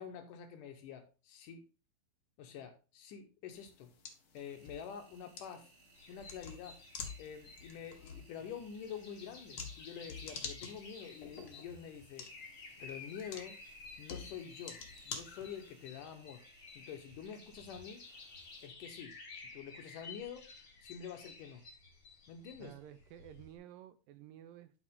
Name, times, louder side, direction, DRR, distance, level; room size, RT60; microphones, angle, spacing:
voice 1, 0.0-1.7 2.4-3.9 4.3-5.7 6.1-6.8 7.2-12.3 12.8-13.6 14.0-16.4 16.7-18.0 18.6-20.5 20.8-21.6 22.3-22.7, left 8 dB, 75° left, 6 dB, 2.2 m, -47 dB
sound 1, 3.5-15.9, left 6 dB, 55° left, 1.5 m, -50 dB
Engine, 4.4-18.7, right 3 dB, 60° right, 2.0 m, -65 dB
sound 2, 5.9-23.5, left 4 dB, 35° left, 2.7 m, -54 dB
voice 2, 22.6-24.7, right 11 dB, 80° right, 11 dB, 2.2 m, -52 dB
11.0 x 4.4 x 3.6 m, 0.34 s
omnidirectional pair, 4.2 m